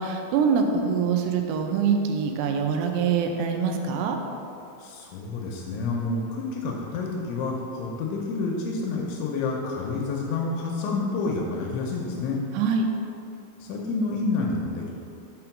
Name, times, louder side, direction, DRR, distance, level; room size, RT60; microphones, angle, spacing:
voice 1, 0.0-4.2 12.6-12.9, right 6 dB, 90° right, 4 dB, 3.5 m, -24 dB
voice 2, 4.8-12.4 13.6-14.9, left 3 dB, 80° left, -1 dB, 2.9 m, -29 dB
6.7 x 5.9 x 5.9 m, 2.6 s
omnidirectional pair, 5.9 m